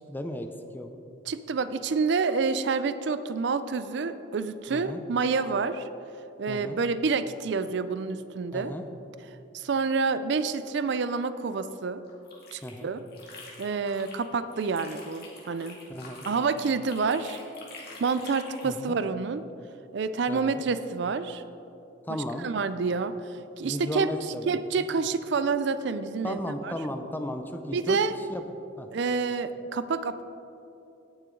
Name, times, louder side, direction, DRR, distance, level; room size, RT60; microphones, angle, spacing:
voice 1, 0.1-0.9 4.7-5.0 6.5-6.8 8.5-8.8 12.6-12.9 15.9-16.3 18.6-19.0 20.3-20.6 22.0-22.5 23.6-24.9 26.2-28.0 28.3-28.4 28.8-28.9, left 1 dB, 10° left, 7 dB, 0.5 m, -35 dB
voice 2, 1.3-5.9 6.4-8.7 9.5-12.0 12.5-13.0 13.6-15.8 16.2-17.4 18.0-19.4 19.9-21.4 22.1-23.2 23.6-24.1 24.5-26.7 27.7-28.2 28.9-30.2, right 4 dB, 60° right, 12 dB, 0.4 m, -28 dB
sound 1, 12.1-14.2 14.5-18.7, left 3 dB, 50° left, 2.1 m, -46 dB
17.5 x 6.8 x 3.8 m, 2.9 s
head